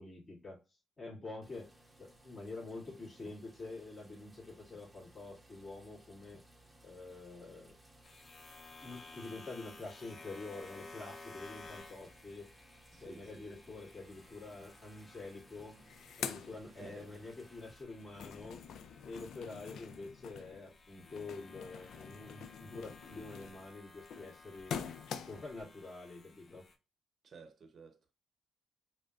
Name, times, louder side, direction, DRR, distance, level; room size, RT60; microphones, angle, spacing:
voice 1, 0.0-1.7 2.0-6.4 6.8-7.7 8.8-12.5 13.0-15.8 16.2-18.6 19.0-24.9 25.3-26.7, left 3 dB, 25° left, 2.1 m, -47 dB
sound 1, 1.4-17.8, right 1 dB, 10° right, 0.7 m, -62 dB
sound 2, 8.0-26.7, left 3 dB, 40° left, 0.9 m, -56 dB
voice 2, 12.9-13.5 15.8-15.9 16.8-17.1 27.2-28.1, right 4 dB, 50° right, 0.7 m, -54 dB
sound 3, 15.7-17.3 17.7-25.6, left 7 dB, 75° left, 0.4 m, -46 dB
5.0 x 2.0 x 2.4 m
cardioid pair, 90°, 0 cm